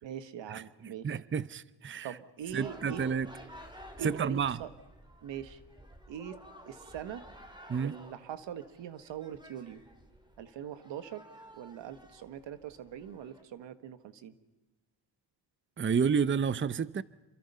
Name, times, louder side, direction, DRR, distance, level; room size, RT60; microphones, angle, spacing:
voice 1, 0.0-1.1 2.0-3.2 4.0-4.7 5.2-5.6 6.1-7.2 7.8-9.8 10.4-11.3 11.5-14.3, right 9 dB, 85° right, 1.6 m, -42 dB
voice 2, 1.0-2.1 2.5-3.3 4.0-4.6 7.7-7.9 15.8-17.0, right 6 dB, 30° right, 0.7 m, -30 dB
sound 1, 2.4-13.4, equal, 10° right, 4.2 m, -53 dB
28.0 x 23.5 x 5.6 m
cardioid pair, 75°, 43 cm